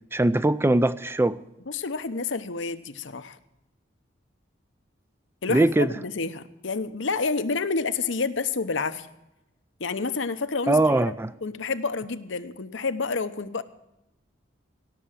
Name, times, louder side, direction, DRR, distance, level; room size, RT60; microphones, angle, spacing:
voice 1, 0.1-1.4 5.5-5.9 10.7-11.3, right 2 dB, 10° right, 0.4 m, -21 dB
voice 2, 1.7-3.4 5.4-9.1 9.8-11.1 11.4-13.6, left 4 dB, 75° left, 0.9 m, -29 dB
17.5 x 6.9 x 7.5 m
head